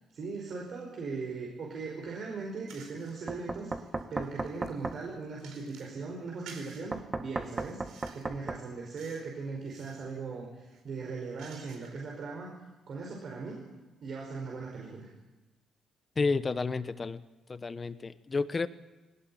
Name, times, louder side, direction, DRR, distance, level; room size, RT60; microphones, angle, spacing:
voice 1, 0.1-3.7 4.1-12.5 12.9-13.6 14.0-15.1, right 4 dB, 55° right, 0 dB, 5.0 m, -39 dB
sound 1, 2.7-3.2 3.7-6.0 6.5-6.9 7.4-8.3 9.0-9.3 9.6-10.1 10.6-12.1, right 6 dB, 80° right, 4.6 m, -53 dB
Knock, 3.3-5.0 6.9-8.6, right 3 dB, 25° right, 1.8 m, -35 dB
voice 2, 16.2-17.2 17.5-18.7, left 4 dB, 30° left, 13 dB, 1.2 m, -31 dB
20.5 x 18.5 x 8.9 m, 1.1 s
cardioid pair, 90°, 0 cm